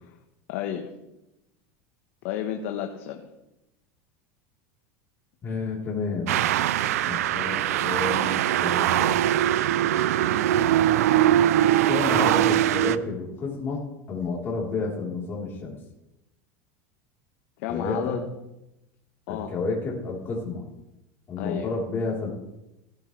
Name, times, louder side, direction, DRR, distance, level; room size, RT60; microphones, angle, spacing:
voice 1, 0.5-0.9 2.2-3.2 17.6-18.2 19.3-19.5 21.4-21.7, left 10 dB, 65° left, 4 dB, 1.4 m, -31 dB
voice 2, 5.4-6.4 7.1-9.2 11.9-15.8 17.7-18.2 19.3-20.6 21.3-22.3, left 3 dB, 30° left, -5 dB, 4.0 m, -30 dB
sound 1, 6.3-13.0, right 12 dB, 90° right, 0.5 m, -22 dB
18.5 x 10.5 x 3.4 m, 0.92 s
supercardioid pair, 135°, 8 cm